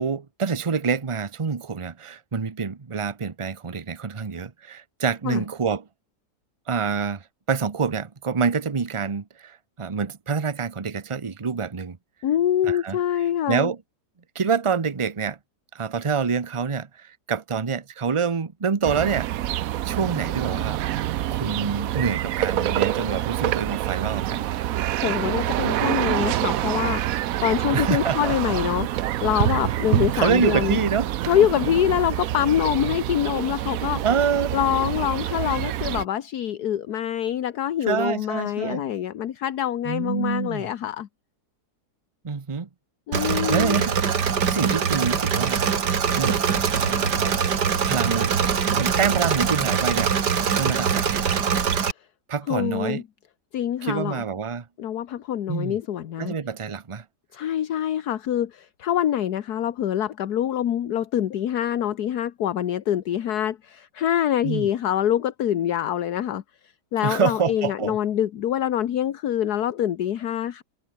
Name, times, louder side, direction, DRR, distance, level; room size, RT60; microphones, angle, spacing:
voice 1, 0.0-5.8 6.7-7.2 7.5-12.0 12.7-13.0 13.5-13.8 14.3-15.4 15.7-19.3 19.8-20.8 21.3-24.5 27.7-28.3 30.1-31.3 34.0-34.5 37.9-38.8 39.8-40.7 42.2-42.7 43.2-44.0 44.5-45.6 46.1-47.4 47.8-48.3 48.6-50.1 50.6-51.4 52.3-53.0 53.8-54.6 55.5-55.8 56.2-57.0 64.4-64.7 67.0-68.0, right 5 dB, 25° right, 0.9 m, -26 dB
voice 2, 12.2-13.7 25.0-30.8 31.3-34.0 34.5-41.1 43.1-43.8 52.5-53.0 53.5-54.2 54.8-56.4 57.3-66.4 66.9-70.6, left 10 dB, 70° left, 1.5 m, -25 dB
sound 1, 18.8-36.1, right 13 dB, 65° right, 1.0 m, -26 dB
Engine / Mechanisms, 43.1-51.9, right 7 dB, 90° right, 2.4 m, -23 dB
omnidirectional pair, 1.8 m